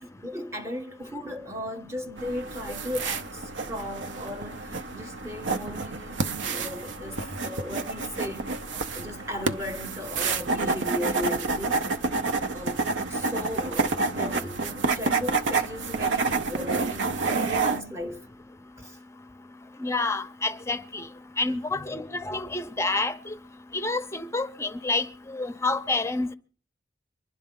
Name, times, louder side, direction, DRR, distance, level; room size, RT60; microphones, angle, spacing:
voice 1, 0.0-8.5 8.9-11.9 12.5-18.3 18.8-19.0 21.4-21.5, left 1 dB, 15° right, 0.9 m, -36 dB
sound 1, 2.2-17.8, right 4 dB, 75° right, 0.7 m, -29 dB
voice 2, 19.8-21.1 21.4-23.3 23.7-26.3, left 3 dB, 15° left, 0.6 m, -28 dB
24.0 x 11.5 x 3.7 m
head